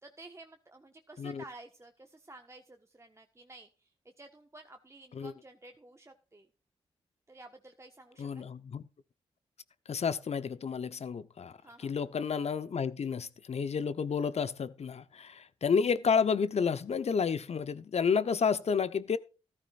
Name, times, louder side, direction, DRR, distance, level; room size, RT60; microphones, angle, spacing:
voice 1, 0.0-3.9 4.2-6.5 7.3-8.5 11.6-12.0, right 2 dB, 25° right, 1.4 m, -52 dB
voice 2, 8.2-8.8 9.9-19.2, left 6 dB, 60° left, 0.9 m, -31 dB
14.0 x 12.5 x 2.5 m
supercardioid pair, 45°, 12 cm